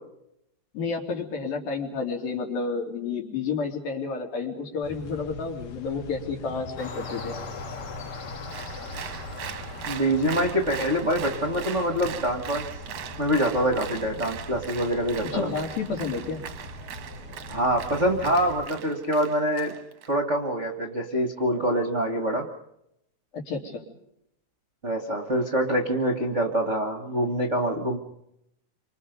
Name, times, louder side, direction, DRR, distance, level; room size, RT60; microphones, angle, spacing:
voice 1, 0.7-7.4 15.3-16.4 23.3-23.9, left 4 dB, 75° left, 1 dB, 5.1 m, -30 dB
sound 1, 4.8-18.6, left 2 dB, 60° left, 2.9 m, -42 dB
sound 2, 6.8-12.0, left 3 dB, 35° left, 1.9 m, -41 dB
Applause, 8.5-20.1, right 9 dB, 60° right, 1.8 m, -40 dB
voice 2, 9.9-12.6 13.2-15.5 17.5-19.7 20.1-22.5 24.8-28.0, equal, 35° right, 4 dB, 1.3 m, -25 dB
29.5 x 25.5 x 5.3 m, 0.79 s
omnidirectional pair, 4.1 m